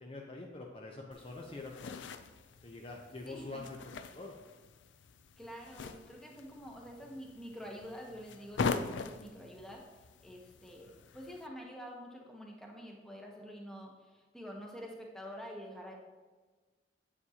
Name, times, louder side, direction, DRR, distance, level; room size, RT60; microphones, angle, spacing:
voice 1, 0.0-2.0 2.6-4.3, left 2 dB, 30° left, 0 dB, 0.6 m, -45 dB
sound 1, 1.1-11.5, left 4 dB, 70° left, 0.4 m, -42 dB
voice 2, 3.2-3.6 5.4-9.8 10.2-15.9, equal, 5° left, -1 dB, 0.9 m, -47 dB
8.2 x 7.3 x 2.8 m, 1.3 s
head